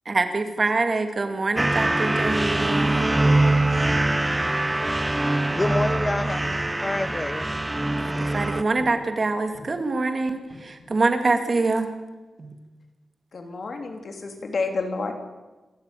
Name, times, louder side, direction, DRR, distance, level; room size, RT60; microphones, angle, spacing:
voice 1, 0.1-3.1 8.2-11.9 12.4-12.5, right 3 dB, 35° right, 2.3 m, -25 dB
sound 1, 1.6-8.6, right 2 dB, 10° right, 0.7 m, -23 dB
sound 2, 5.5-5.8 6.2-6.4 7.1-7.3 7.6-8.1 8.8-9.1 9.5-9.9 10.5-11.0, left 2 dB, 90° left, 6.5 m, -44 dB
voice 2, 5.5-7.5, left 2 dB, 20° left, 0.8 m, -28 dB
voice 3, 13.3-15.1, left 4 dB, 50° left, 3.4 m, -29 dB
27.0 x 13.5 x 9.2 m
wide cardioid pair, 155°, 0 cm